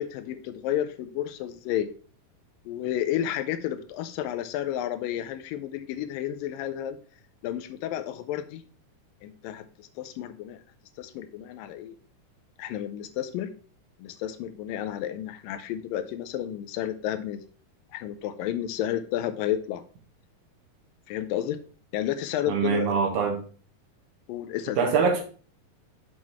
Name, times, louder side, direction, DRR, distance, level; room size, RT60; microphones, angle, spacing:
voice 1, 0.0-1.9 2.7-7.0 7.4-8.6 9.2-10.6 11.0-12.0 12.6-13.5 14.0-17.4 17.9-19.8 21.1-21.6 21.9-23.0 24.3-24.9, left 11 dB, 90° left, 11 dB, 2.4 m, -31 dB
voice 2, 22.5-23.4 24.8-25.2, right 6 dB, 70° right, 1 dB, 2.6 m, -24 dB
7.4 x 6.2 x 3.0 m, 0.41 s
omnidirectional pair, 3.9 m